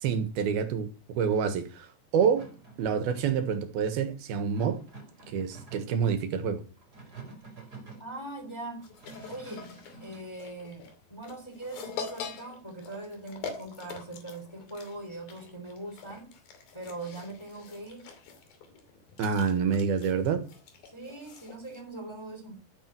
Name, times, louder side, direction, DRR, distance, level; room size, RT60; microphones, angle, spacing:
voice 1, 0.0-2.5 2.8-4.8 5.3-6.6 19.2-20.4, right 6 dB, 80° right, 3.4 m, -27 dB
sound 1, 2.3-3.5 4.5-6.0 6.8-8.1 8.8-10.3, right 3 dB, 25° right, 5.2 m, -48 dB
voice 2, 8.0-8.8 9.3-9.7 10.0-16.3 16.7-18.1 20.8-22.6, right 2 dB, 10° left, 3.0 m, -41 dB
sound 2, 8.8-21.8, left 6 dB, 70° left, 4.2 m, -44 dB
13.5 x 9.2 x 7.5 m
omnidirectional pair, 4.3 m